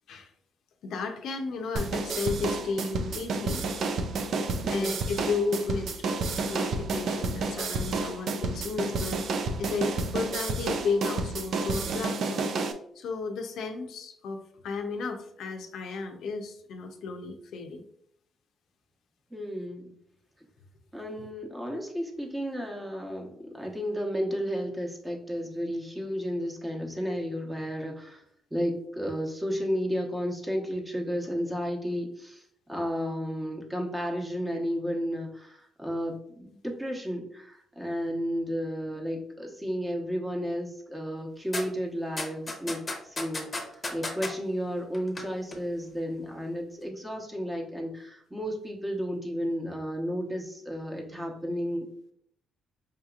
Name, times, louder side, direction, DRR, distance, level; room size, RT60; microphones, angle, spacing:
voice 1, 0.8-3.6 4.7-5.9 6.5-12.4 13.0-17.8, left 4 dB, 75° left, 5 dB, 0.5 m, -33 dB
sound 1, 1.8-12.7, right 3 dB, 65° right, 0.4 m, -30 dB
voice 2, 4.6-5.0 19.3-19.9 20.9-28.2 28.5-51.9, equal, 15° right, 1 dB, 0.9 m, -33 dB
sound 2, 41.5-41.6 42.2-44.3 44.9-45.2 45.5-45.6, left 2 dB, 30° left, 0.8 m, -33 dB
4.9 x 2.8 x 2.4 m, 0.66 s
cardioid pair, 90°, 0 cm